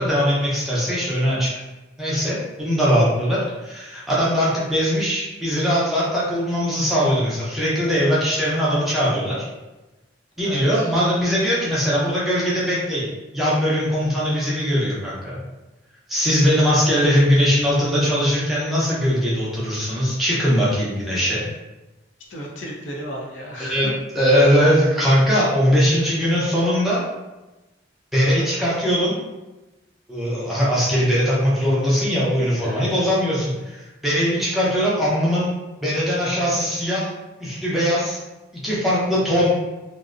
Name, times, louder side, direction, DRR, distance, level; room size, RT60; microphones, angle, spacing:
voice 1, 0.0-1.5 2.0-9.5 10.4-13.1 13.3-15.4 16.1-21.5 23.7-23.9 24.1-27.0 28.1-29.2 30.1-35.5 35.8-37.1 37.4-38.2 38.6-39.5, equal, ahead, -8 dB, 0.5 m, -20 dB
voice 2, 10.4-10.9 22.3-23.9 28.2-28.5 32.5-33.0, equal, 85° left, -2 dB, 0.5 m, -34 dB
2.5 x 2.1 x 2.5 m, 1.1 s
head